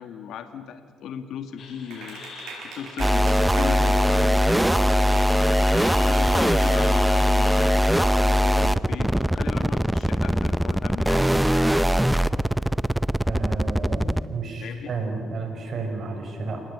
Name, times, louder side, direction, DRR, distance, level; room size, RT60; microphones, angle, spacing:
voice 1, 0.0-2.2 2.7-5.0 5.9-12.0 14.6-14.9, left 8 dB, 80° left, 8 dB, 1.8 m, -37 dB
sound 1, 1.6-7.7, left 6 dB, 60° left, 5.8 m, -43 dB
Clapping, 1.9-7.2, right 4 dB, 85° right, 7.2 m, -42 dB
sound 2, 3.0-14.3, equal, 5° right, 0.7 m, -21 dB
voice 2, 13.3-16.6, right 3 dB, 55° right, 4 dB, 6.2 m, -31 dB
28.5 x 19.5 x 8.6 m, 2.1 s
cardioid pair, 90°, 0 cm